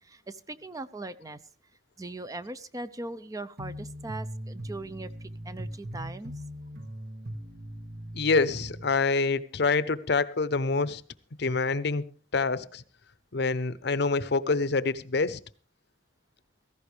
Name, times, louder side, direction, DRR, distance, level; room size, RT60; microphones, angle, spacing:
voice 1, 0.0-1.4 2.0-6.3, right 2 dB, 20° right, 0.5 m, -40 dB
sound 1, 3.6-8.9, equal, 55° right, 1.6 m, -40 dB
voice 2, 8.1-11.0 11.4-12.0 12.3-12.8 13.3-15.4, left 4 dB, 60° left, 0.7 m, -26 dB
17.0 x 15.0 x 3.3 m
head